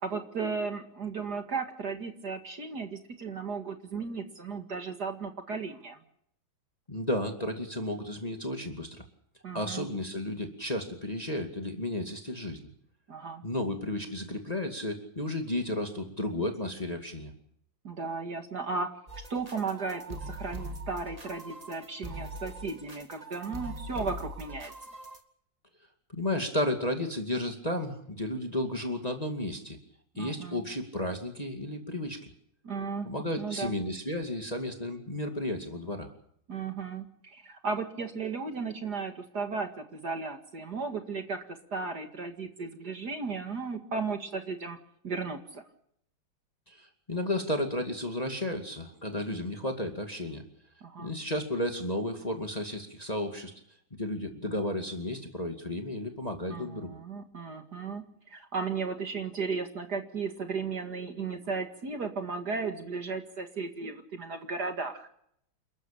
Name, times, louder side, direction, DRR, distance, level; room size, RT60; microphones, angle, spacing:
voice 1, 0.0-6.0 9.4-9.9 13.1-13.4 17.8-18.9 19.3-24.7 30.2-30.7 32.6-33.1 33.4-33.8 36.5-41.4 41.7-44.8 45.0-45.6 50.8-51.2 56.5-65.1, right 4 dB, 50° right, 6 dB, 2.5 m, -35 dB
voice 2, 6.9-9.0 9.5-12.6 13.4-17.3 26.1-29.8 30.2-32.3 33.0-36.1 46.7-50.4 51.0-53.5 53.9-56.9, left 1 dB, 20° left, 4 dB, 2.4 m, -33 dB
sound 1, 19.1-25.2, right 1 dB, 20° right, 2.2 m, -42 dB
28.5 x 13.5 x 8.6 m, 0.69 s
omnidirectional pair, 2.2 m